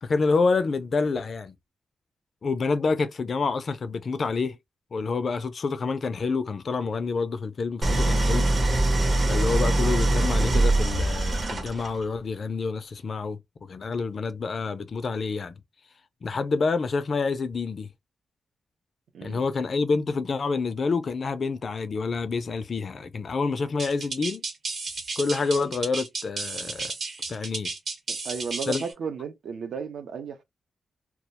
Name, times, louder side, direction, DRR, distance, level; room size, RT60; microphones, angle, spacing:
voice 1, 0.0-1.5 2.4-4.6 4.9-8.5 9.3-13.4 13.7-15.6 16.2-17.9 19.2-24.4 25.2-26.9 27.3-27.7 28.7-28.8, left 4 dB, 40° left, 0.3 m, -27 dB
Idling, 7.8-12.0, right 2 dB, 35° right, 0.6 m, -23 dB
sound 1, 23.8-28.9, right 3 dB, 50° right, 0.9 m, -33 dB
voice 2, 28.1-30.4, right 6 dB, 80° right, 0.6 m, -34 dB
2.2 x 2.1 x 2.7 m
wide cardioid pair, 170°, 0 cm